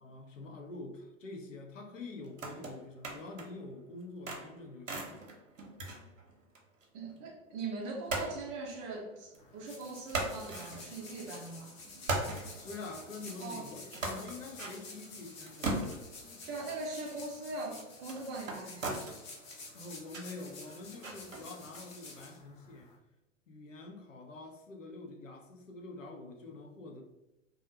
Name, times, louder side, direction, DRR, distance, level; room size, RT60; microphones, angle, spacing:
voice 1, 0.0-5.1 12.6-16.0 19.7-22.9 23.5-27.0, left 3 dB, 80° left, 0.6 m, -46 dB
sound 1, 2.2-3.6 4.0-6.8 7.1-7.2 8.1-9.4 9.8-11.5 11.8-21.8, right 2 dB, 80° right, 0.7 m, -40 dB
voice 2, 6.9-11.7 13.4-13.7 16.5-19.0, right 3 dB, 30° right, 0.5 m, -41 dB
sound 2, 9.4-23.0, left 3 dB, 35° left, 0.7 m, -50 dB
2.4 x 2.0 x 2.7 m
figure-of-eight pair, 95°, 38 cm